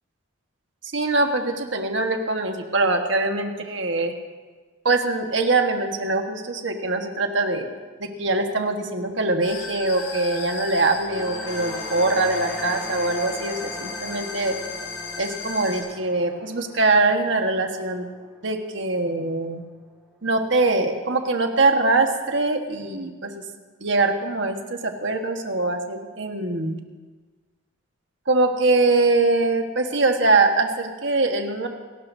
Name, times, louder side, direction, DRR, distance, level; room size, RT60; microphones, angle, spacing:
voice 1, 0.8-4.1 4.8-7.7 8.0-14.6 15.2-18.0 18.4-19.6 20.2-23.3 23.8-26.8 28.3-31.7, right 3 dB, 65° right, 4 dB, 1.5 m, -23 dB
sound 1, 9.4-15.8, left 5 dB, 85° left, 4.9 m, -35 dB
sound 2, 10.9-19.3, right 1 dB, 5° left, 4.9 m, -39 dB
29.5 x 12.5 x 2.7 m, 1.4 s
head